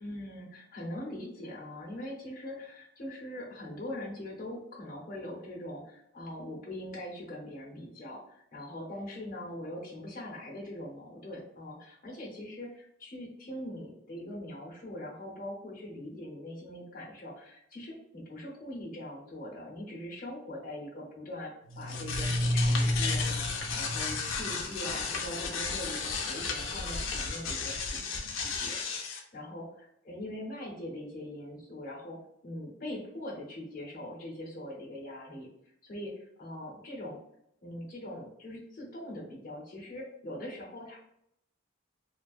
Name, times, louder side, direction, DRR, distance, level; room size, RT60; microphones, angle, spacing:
voice 1, 0.0-28.0 28.3-32.2 32.4-35.5 35.8-37.2 37.6-41.0, left 1 dB, 45° left, -2 dB, 0.8 m, -42 dB
sound 1, 21.7-29.2, left 3 dB, 80° left, 0.5 m, -31 dB
2.5 x 2.3 x 2.3 m, 0.75 s
head